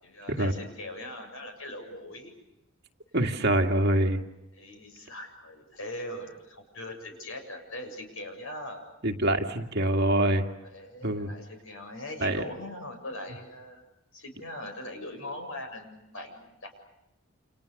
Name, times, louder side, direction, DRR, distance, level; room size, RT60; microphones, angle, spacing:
voice 1, 0.0-2.4 4.5-8.8 10.6-13.9 14.1-16.8, left 1 dB, 70° left, 5 dB, 7.3 m, -41 dB
voice 2, 3.1-4.2 9.0-10.5 11.0-11.3 12.2-12.4, right 1 dB, 50° right, 4 dB, 2.3 m, -25 dB
29.5 x 28.5 x 6.8 m, 0.91 s
head